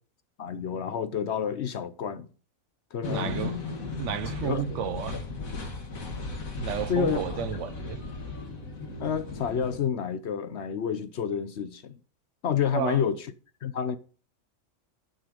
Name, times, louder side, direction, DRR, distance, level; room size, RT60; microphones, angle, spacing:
voice 1, 0.4-2.3 2.9-3.4 4.4-4.8 6.9-7.4 9.0-11.9 12.4-13.2 13.6-14.0, left 7 dB, 60° left, 1.0 m, -29 dB
sound 1, 3.0-9.8, left 4 dB, 80° left, 2.4 m, -36 dB
voice 2, 3.1-3.6 4.0-5.2 6.6-8.0 12.7-13.0, right 9 dB, 65° right, 0.9 m, -32 dB
12.0 x 6.5 x 5.2 m
omnidirectional pair, 1.4 m